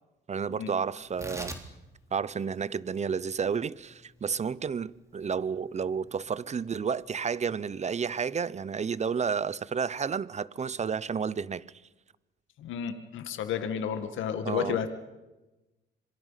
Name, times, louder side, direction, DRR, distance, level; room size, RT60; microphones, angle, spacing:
voice 1, 0.3-1.5 2.1-11.6 14.4-14.8, right 6 dB, 35° right, 0.8 m, -31 dB
Tearing, 1.0-7.7, right 1 dB, 15° right, 3.3 m, -47 dB
voice 2, 12.6-14.9, left 8 dB, 80° left, 2.0 m, -31 dB
26.0 x 22.0 x 5.8 m
cardioid pair, 90°, 20 cm